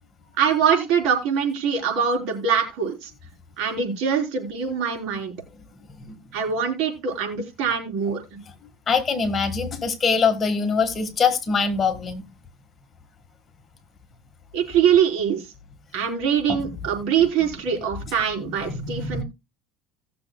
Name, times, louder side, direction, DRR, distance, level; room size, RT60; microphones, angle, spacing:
voice 1, 0.4-3.1 3.6-5.3 6.3-8.2 14.5-15.5 15.9-19.2, right 7 dB, 65° right, 1 dB, 3.9 m, -23 dB
voice 2, 8.9-12.3 16.5-16.6 18.7-19.2, left 5 dB, 30° left, 7 dB, 1.6 m, -23 dB
18.0 x 6.8 x 2.3 m, 0.24 s
supercardioid pair, 120°, 0 cm